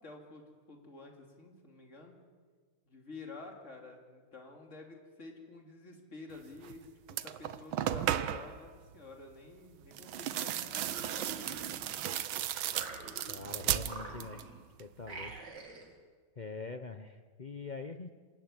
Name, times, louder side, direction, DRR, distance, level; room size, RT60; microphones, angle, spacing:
voice 1, 0.0-2.2 2.9-10.9 11.1-11.6, left 3 dB, 35° left, 1 dB, 3.3 m, -50 dB
sound 1, 6.6-6.8 7.1-8.6 9.9-14.5 14.8-15.4, right 11 dB, 80° right, 1.6 m, -35 dB
sound 2, 10.7-12.2 12.7-13.5 13.8-14.6 15.0-15.9, right 3 dB, 55° right, 3.3 m, -46 dB
voice 2, 13.3-14.4 14.8-15.3 16.4-18.1, left 4 dB, 65° left, 7 dB, 0.4 m, -44 dB
26.0 x 13.0 x 9.8 m, 1.5 s
omnidirectional pair, 2.2 m